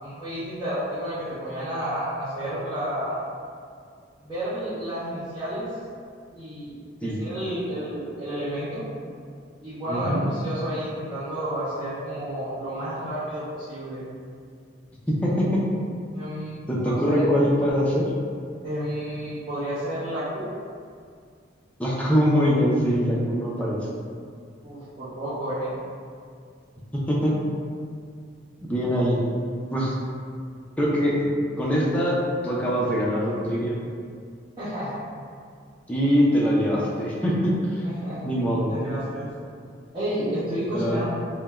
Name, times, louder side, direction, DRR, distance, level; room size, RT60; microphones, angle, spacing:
voice 1, 0.0-3.2 4.2-5.7 6.3-8.9 9.6-14.0 16.1-17.3 18.6-20.5 24.6-25.7 34.6-35.0 37.8-38.3 38.7-39.3 39.9-41.0, right 1 dB, 20° right, -17 dB, 0.7 m, -31 dB
voice 2, 9.9-10.3 15.1-15.6 16.7-18.1 21.8-23.9 26.9-27.4 28.7-29.2 29.7-29.9 30.8-31.3 31.6-33.8 35.9-37.9 38.2-38.7 40.7-41.0, equal, 5° left, -6 dB, 0.3 m, -23 dB
3.1 x 2.0 x 2.2 m, 2.2 s
head